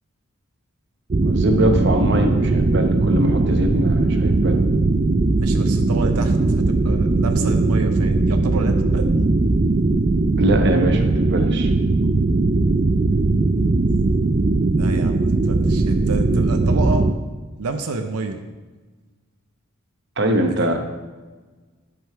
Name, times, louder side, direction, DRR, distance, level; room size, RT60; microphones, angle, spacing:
sound 1, 1.1-17.1, right 2 dB, 35° right, 0.4 m, -19 dB
voice 1, 1.2-4.6 10.4-11.7 20.2-20.8, right 1 dB, 50° right, 5 dB, 0.9 m, -22 dB
voice 2, 5.4-9.2 14.7-17.1 17.6-18.4 20.4-20.8, right 3 dB, 85° right, 6 dB, 0.6 m, -29 dB
11.5 x 5.4 x 4.5 m, 1.3 s
head